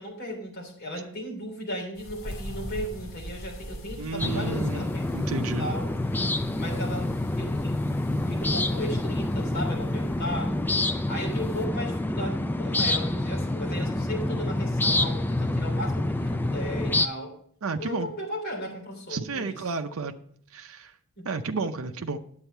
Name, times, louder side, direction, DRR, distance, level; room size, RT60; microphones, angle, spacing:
voice 1, 0.0-5.9 6.6-7.8 8.3-10.6 11.1-17.3 17.8-19.6 21.2-21.3, equal, 45° left, 0 dB, 3.2 m, -36 dB
sound 1, 2.0-11.6, equal, 70° left, 1.4 m, -43 dB
voice 2, 4.0-5.7 14.3-14.4 17.6-18.1 19.1-20.2 20.5-20.9 21.2-22.2, right 4 dB, 75° right, 6 dB, 0.6 m, -32 dB
sound 2, 4.2-17.1, left 1 dB, 10° left, 0.3 m, -27 dB
9.7 x 8.1 x 4.4 m, 0.63 s
head